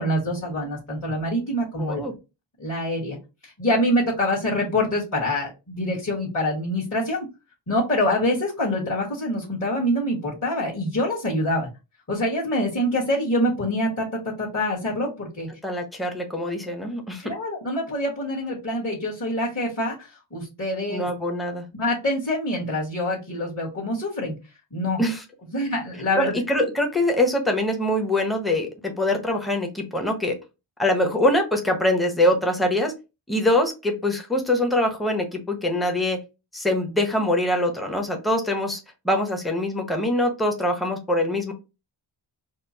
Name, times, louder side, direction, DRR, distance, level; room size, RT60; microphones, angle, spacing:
voice 1, 0.0-2.0 2.6-3.2 3.4-7.3 7.7-11.7 12.1-15.5 17.2-21.1 21.7-24.3 24.7-25.0 25.5-26.3, left 1 dB, 35° left, -7 dB, 1.5 m, -25 dB
voice 2, 1.8-2.1 15.6-17.3 20.9-21.6 25.0-25.2 26.1-30.3 30.8-32.9 33.3-36.2 36.5-38.8 39.0-41.5, left 1 dB, ahead, 3 dB, 0.8 m, -23 dB
4.3 x 2.1 x 2.7 m, 0.27 s
wide cardioid pair, 85°, 49 cm